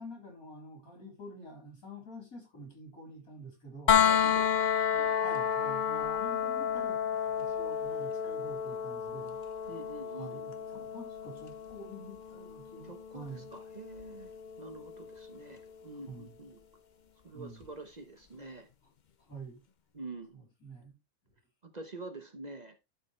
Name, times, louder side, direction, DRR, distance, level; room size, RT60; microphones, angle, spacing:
voice 1, 0.0-4.0 5.2-9.4 10.2-13.5 16.1-16.4 17.3-17.7 19.2-19.6 20.6-20.9, right 1 dB, 85° left, 4.1 m, -47 dB
sound 1, 3.9-15.7 17.6-17.7, left 8 dB, 45° left, 0.7 m, -31 dB
voice 2, 4.0-5.4 9.7-10.9 12.8-14.3 14.6-16.6 17.2-18.7 19.9-20.4 21.6-22.9, right 2 dB, 35° right, 0.9 m, -47 dB
12.0 x 4.7 x 3.2 m
omnidirectional pair, 1.5 m